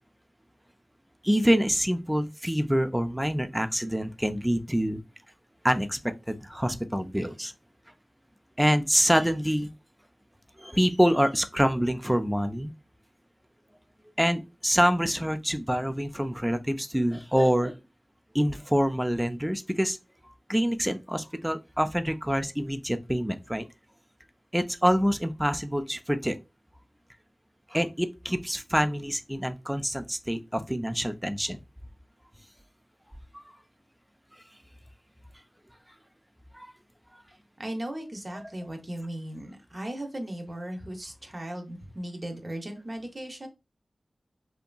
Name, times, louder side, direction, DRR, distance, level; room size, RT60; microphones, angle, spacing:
voice 1, 1.2-5.0 5.6-7.5 8.6-9.7 10.6-12.7 14.2-17.7 18.3-20.0 20.5-23.7 24.5-26.4 27.7-31.6 33.3-33.5 36.5-36.7 37.1-37.2 38.3-38.5, equal, 5° right, 0.4 m, -26 dB
voice 2, 37.6-43.5, right 1 dB, 45° right, 0.7 m, -37 dB
2.7 x 2.5 x 2.2 m
cardioid pair, 45°, 0 cm